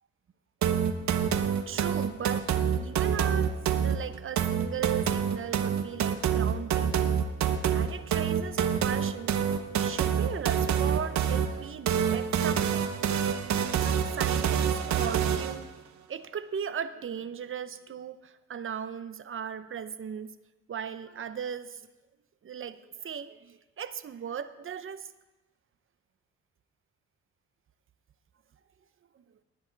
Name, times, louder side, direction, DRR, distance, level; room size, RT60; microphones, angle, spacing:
sound 1, 0.6-15.6, right 8 dB, 65° right, 1.0 m, -27 dB
voice 1, 1.7-3.6 3.8-9.4 9.8-12.9 13.8-15.7 16.1-20.4 20.7-21.9 22.4-25.1, right 8 dB, 45° right, 12 dB, 0.8 m, -37 dB
19.5 x 9.7 x 4.0 m, 1.1 s
cardioid pair, 90°, 30 cm